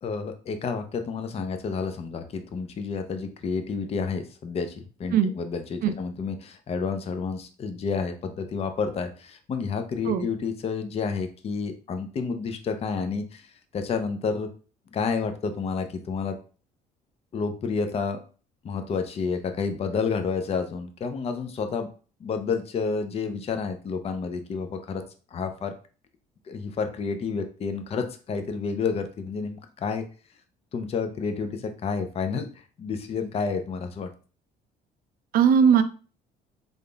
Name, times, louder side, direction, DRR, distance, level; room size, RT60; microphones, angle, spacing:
voice 1, 0.0-13.5 13.7-14.5 14.9-16.4 17.3-18.2 18.6-21.9 22.2-25.0 25.3-25.7 26.5-30.0 30.7-32.5 32.8-34.1, left 5 dB, 35° left, 7 dB, 0.5 m, -30 dB
voice 2, 35.3-35.8, right 7 dB, 60° right, 10 dB, 0.5 m, -19 dB
3.9 x 3.5 x 2.2 m, 0.37 s
cardioid pair, 110°, 17 cm